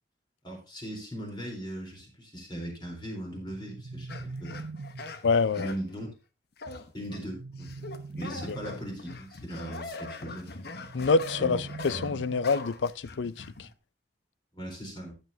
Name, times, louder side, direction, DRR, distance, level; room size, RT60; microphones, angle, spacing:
voice 1, 0.4-4.6 5.6-6.1 6.9-10.5 11.4-11.6 14.5-15.1, equal, 25° left, 3.9 m, -39 dB
sound 1, 3.4-5.4 7.0-8.9 10.7-12.7, right 3 dB, 55° right, 0.6 m, -42 dB
sound 2, 4.1-5.9 6.6-7.2 7.6-13.7, left 3 dB, 60° left, 1.0 m, -42 dB
voice 2, 5.2-5.7 8.5-8.6 10.9-13.7, left 4 dB, 85° left, 0.5 m, -26 dB
15.0 x 8.0 x 2.8 m
head